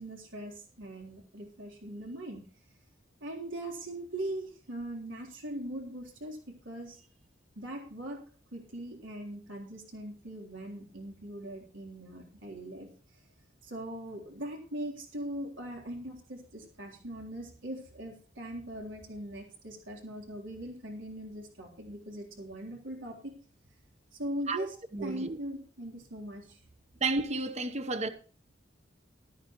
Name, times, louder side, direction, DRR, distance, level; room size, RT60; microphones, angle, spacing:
voice 1, 0.0-2.4 3.2-7.1 7.5-8.2 8.5-12.9 13.6-23.3 24.2-26.6, right 1 dB, 85° right, 3.5 m, -40 dB
voice 2, 24.9-25.4 27.0-28.1, right 3 dB, 35° right, 1.0 m, -31 dB
14.0 x 12.5 x 3.1 m
head